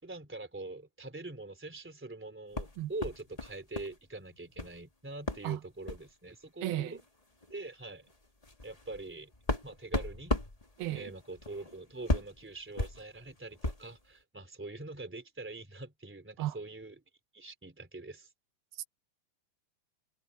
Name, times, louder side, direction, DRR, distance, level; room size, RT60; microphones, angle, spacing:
voice 1, 0.0-7.0 7.5-8.1 8.6-9.3 9.6-10.4 10.9-16.9 17.3-18.3, right 2 dB, 5° right, 2.8 m, -44 dB
sound 1, 2.5-4.0 4.2-4.8 5.3-5.5 5.8-6.1 7.0-7.1 7.4-7.6 8.1-14.0, left 2 dB, 20° left, 1.0 m, -36 dB
voice 2, 6.6-7.0 10.8-11.1 16.4-16.6 18.7-18.9, right 15 dB, 85° right, 2.9 m, -34 dB
omnidirectional pair, 4.2 m